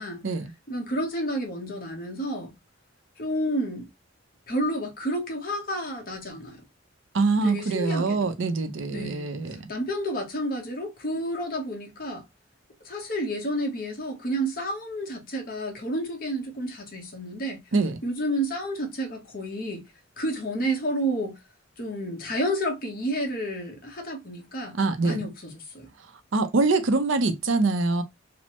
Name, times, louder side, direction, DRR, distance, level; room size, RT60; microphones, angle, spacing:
voice 1, 0.7-2.5 3.2-3.9 4.5-6.6 7.4-8.3 8.9-12.2 12.8-17.6 18.0-19.8 20.2-21.4 21.8-24.8 25.0-25.9, equal, 45° left, 0.9 m, -30 dB
voice 2, 7.1-9.7 17.7-18.0 24.7-25.2 26.3-28.0, right 3 dB, 70° right, 0.5 m, -24 dB
3.1 x 2.0 x 2.8 m
head